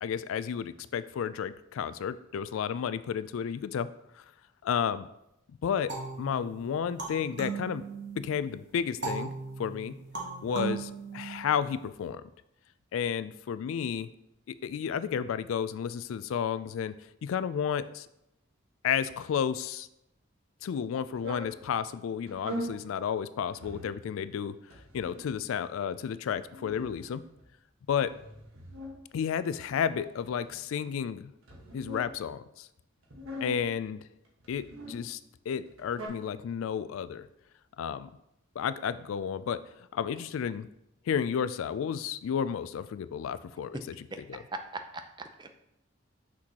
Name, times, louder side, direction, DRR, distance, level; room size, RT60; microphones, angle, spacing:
voice 1, 0.0-4.2 4.6-5.1 5.6-7.8 8.2-9.3 9.6-10.0 10.4-12.2 12.9-14.1 14.5-17.0 17.2-18.1 18.8-19.9 20.6-24.6 24.9-27.2 27.9-28.1 29.1-31.3 31.7-32.7 33.4-34.0 34.5-35.2 35.5-37.3 37.8-38.1 38.6-40.7 41.1-43.8 44.3-44.4, left 7 dB, 80° left, 14 dB, 0.3 m, -32 dB
sound 1, 5.9-8.4 9.0-11.8, right 4 dB, 55° right, 1.2 m, -38 dB
sound 2, 21.1-21.5 22.3-22.8 23.5-24.0 24.7-25.4 26.2-27.5 28.0-29.0 29.7-30.7 31.4-32.1 33.0-33.7 34.4-35.0 35.7-36.1, equal, 80° right, 1.4 m, -42 dB
voice 2, 44.5-45.6, right 3 dB, 20° right, 6 dB, 0.4 m, -39 dB
6.2 x 6.1 x 2.9 m, 0.83 s
head